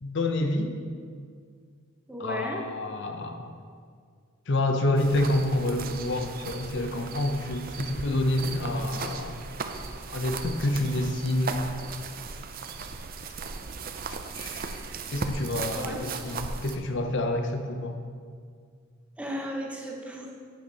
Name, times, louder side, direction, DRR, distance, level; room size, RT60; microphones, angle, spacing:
voice 1, 0.0-0.8 2.2-3.5 4.5-9.4 10.1-11.6 14.3-14.8 15.1-18.0, left 1 dB, 55° left, 6 dB, 0.7 m, -28 dB
voice 2, 2.1-2.6 15.8-16.0 19.2-20.3, equal, 5° right, 0 dB, 0.8 m, -34 dB
sound 1, 5.0-16.8, right 4 dB, 45° right, 0.5 m, -37 dB
9.2 x 7.2 x 4.0 m, 2.1 s
head